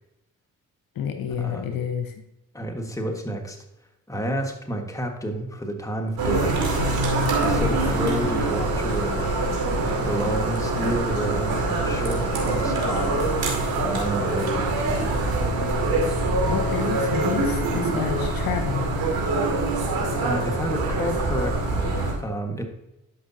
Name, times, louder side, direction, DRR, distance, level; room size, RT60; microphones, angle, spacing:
voice 1, 0.9-2.1 16.5-18.9, left 8 dB, 60° left, 7 dB, 0.9 m, -29 dB
voice 2, 2.5-3.6 4.1-6.6 7.4-9.3 10.0-13.3 13.8-15.3 20.2-22.6, equal, 10° left, 3 dB, 1.6 m, -30 dB
sound 1, 6.2-22.1, right 2 dB, 70° right, 2.4 m, -24 dB
11.5 x 5.3 x 2.8 m, 0.90 s
hypercardioid pair, 50°, 38 cm